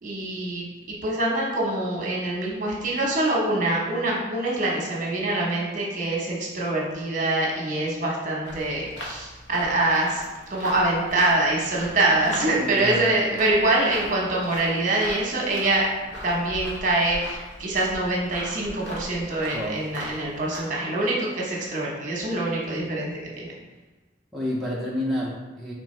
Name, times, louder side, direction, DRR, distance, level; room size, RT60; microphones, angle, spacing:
voice 1, 0.0-10.2 10.5-15.9 16.2-23.5, right 2 dB, 45° right, -3 dB, 1.1 m, -25 dB
sound 1, 8.4-20.6, left 1 dB, 75° left, 1.0 m, -40 dB
voice 2, 12.6-13.1 19.5-19.8 24.3-25.7, equal, ahead, -6 dB, 0.6 m, -29 dB
4.8 x 3.4 x 3.3 m, 1.2 s
head